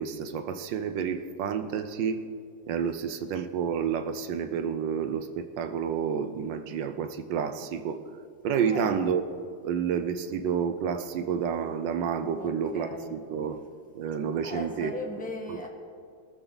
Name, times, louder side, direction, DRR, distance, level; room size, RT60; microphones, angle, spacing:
voice 1, 0.0-2.2 2.7-8.0 8.4-13.6 13.9-14.9 15.5-15.7, right 7 dB, 75° right, 10 dB, 1.5 m, -30 dB
voice 2, 8.6-9.0 12.4-13.1 14.4-15.7, left 2 dB, 5° left, 1 dB, 1.4 m, -38 dB
23.0 x 13.0 x 4.1 m, 2.3 s
omnidirectional pair, 2.1 m